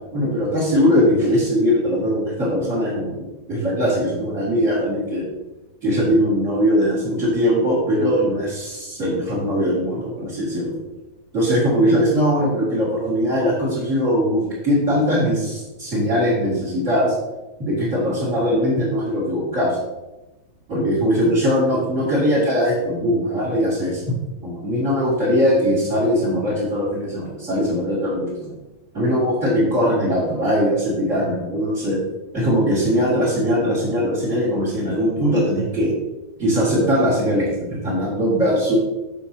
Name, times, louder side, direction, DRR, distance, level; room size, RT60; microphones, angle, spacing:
voice 1, 0.1-5.3 5.8-10.7 11.3-17.1 17.6-19.8 20.7-24.2 24.4-28.6 28.9-32.0 32.3-35.9 36.4-38.8, equal, 25° right, -9 dB, 2.5 m, -20 dB
11.5 x 6.8 x 3.0 m, 1.0 s
omnidirectional pair, 4.2 m